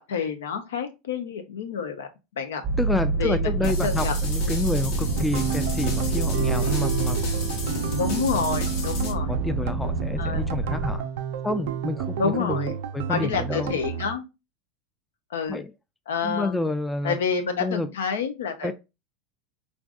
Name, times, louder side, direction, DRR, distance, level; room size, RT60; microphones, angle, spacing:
voice 1, 0.0-2.1 2.4-2.6 3.2-4.1 4.4-4.6 8.0-9.3 10.2-10.4 12.2-12.7 13.1-14.3 15.3-15.6 16.1-16.6 17.0-18.7, left 6 dB, 85° left, 0.6 m, -28 dB
sound 1, 2.6-11.0, right 3 dB, 25° right, 0.6 m, -27 dB
voice 2, 2.8-7.2 9.3-11.1 11.4-13.8 15.5-15.7 16.2-17.2 17.6-17.9 18.6-18.7, left 2 dB, 10° left, 0.3 m, -29 dB
sound 2, 3.6-9.1, left 3 dB, 65° left, 1.1 m, -35 dB
sound 3, 5.1-14.2, right 9 dB, 75° right, 0.3 m, -31 dB
3.4 x 2.6 x 2.4 m
hypercardioid pair, 100°, 0 cm